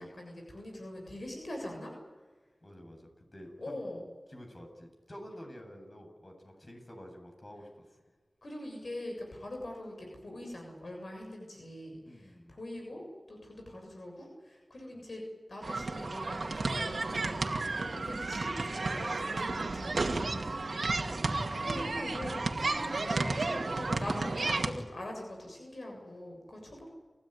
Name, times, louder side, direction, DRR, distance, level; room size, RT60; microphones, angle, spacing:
voice 1, 0.0-1.9 3.6-4.0 8.4-15.2 15.5-20.2 20.5-26.9, left 1 dB, 75° left, 1 dB, 7.2 m, -43 dB
voice 2, 2.6-3.8 4.3-7.9 12.0-12.6 14.9-15.0 20.5-20.8, equal, 45° left, 3 dB, 7.9 m, -49 dB
sound 1, 15.6-24.7, right 3 dB, 85° right, 2.2 m, -32 dB
29.5 x 15.5 x 9.7 m, 1.3 s
wide cardioid pair, 45°, 0 cm